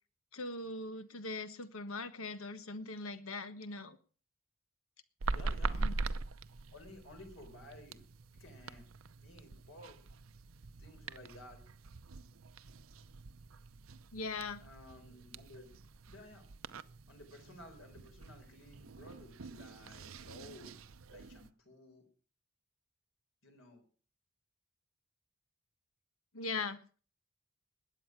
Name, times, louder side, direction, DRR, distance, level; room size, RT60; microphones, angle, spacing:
voice 1, 0.3-4.0 5.7-6.0 14.1-14.6 26.3-26.8, left 3 dB, 90° left, 11 dB, 1.4 m, -40 dB
sound 1, 5.2-21.5, right 3 dB, 75° right, 0.7 m, -43 dB
voice 2, 5.3-5.9 6.7-8.1 8.3-8.8 9.2-10.0 10.8-11.6 14.6-15.7 16.1-16.5 17.1-20.7 21.1-22.1 23.4-23.8, left 1 dB, 70° left, 5 dB, 4.1 m, -54 dB
20.5 x 8.7 x 6.0 m, 0.40 s
head